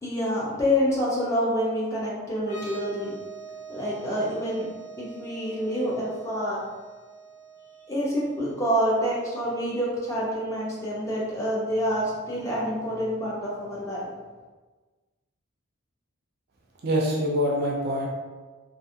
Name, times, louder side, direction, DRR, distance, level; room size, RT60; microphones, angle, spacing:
voice 1, 0.0-3.2 3.7-4.7 5.0-6.6 7.9-14.1, equal, 15° left, -6 dB, 0.6 m, -27 dB
sound 1, 2.4-9.9, right 4 dB, 30° left, 1.0 m, -45 dB
voice 2, 16.8-18.1, equal, 45° right, -2 dB, 0.4 m, -25 dB
2.4 x 2.3 x 2.7 m, 1.3 s
head